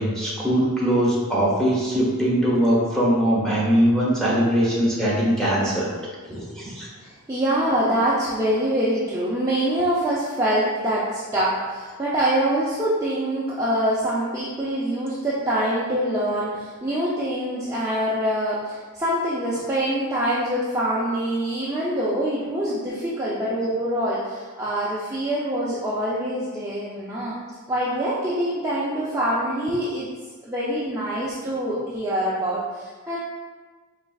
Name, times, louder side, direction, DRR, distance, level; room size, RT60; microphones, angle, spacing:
voice 1, 0.0-5.9 6.3-6.9, equal, 5° left, -6 dB, 0.9 m, -21 dB
voice 2, 7.0-27.4 27.7-30.1 30.4-33.2, right 1 dB, 15° right, -9 dB, 0.4 m, -25 dB
4.6 x 3.2 x 2.3 m, 1.4 s
head